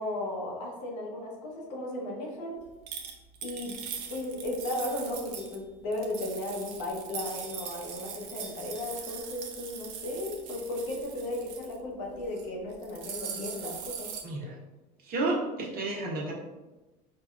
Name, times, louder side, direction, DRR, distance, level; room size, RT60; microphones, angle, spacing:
voice 1, 0.0-2.6 3.4-3.8 4.1-14.1, left 1 dB, 80° left, -1 dB, 1.0 m, -35 dB
sound 1, 2.9-5.5 5.9-11.8 12.2-12.4 12.7-14.2, right 7 dB, 70° right, 0.6 m, -41 dB
voice 2, 14.2-14.6 15.0-16.3, right 2 dB, 45° right, -2 dB, 1.0 m, -31 dB
4.7 x 2.2 x 2.4 m, 1.1 s
hypercardioid pair, 85°, 21 cm